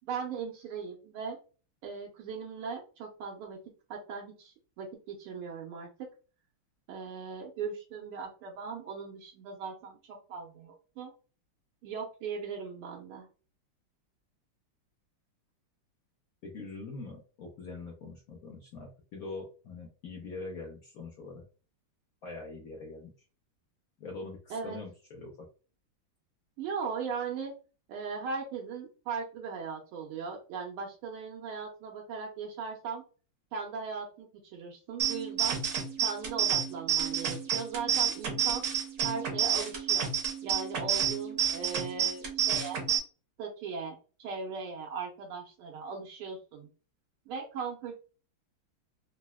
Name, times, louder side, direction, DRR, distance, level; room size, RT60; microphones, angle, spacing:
voice 1, 0.0-1.4 1.8-3.6 3.9-6.1 6.9-11.1 11.8-13.3 24.5-24.8 26.6-27.5 27.9-33.0 33.5-35.6 36.0-38.7 39.0-40.1 40.4-42.8 43.4-46.7 47.3-47.9, right 5 dB, 85° right, 0 dB, 1.6 m, -38 dB
voice 2, 16.4-21.4 22.2-23.1 24.0-25.3, left 3 dB, 80° left, -1 dB, 0.8 m, -43 dB
sound 1, 35.0-43.0, right 9 dB, 60° right, 1.0 m, -30 dB
3.9 x 2.0 x 2.2 m, 0.35 s
omnidirectional pair, 2.4 m